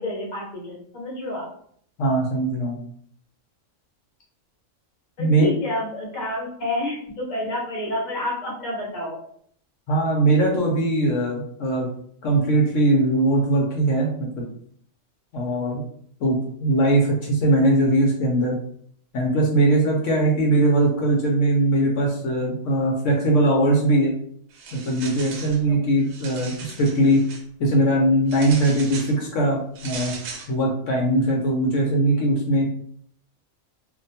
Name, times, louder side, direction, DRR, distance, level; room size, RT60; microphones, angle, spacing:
voice 1, 0.0-1.5 5.2-9.2 25.7-25.8, left 1 dB, 40° left, -3 dB, 0.9 m, -29 dB
voice 2, 2.0-2.8 5.2-5.5 9.9-11.9 12.2-14.4 15.3-15.8 16.2-18.6 19.1-24.1 24.7-27.2 27.6-30.1 30.5-32.7, right 1 dB, 70° left, -1 dB, 0.9 m, -20 dB
sound 1, 24.5-25.6 26.0-27.4 28.3-29.2 29.8-30.5, right 4 dB, 75° right, 0.9 m, -38 dB
2.5 x 2.1 x 2.7 m, 0.63 s
omnidirectional pair, 1.4 m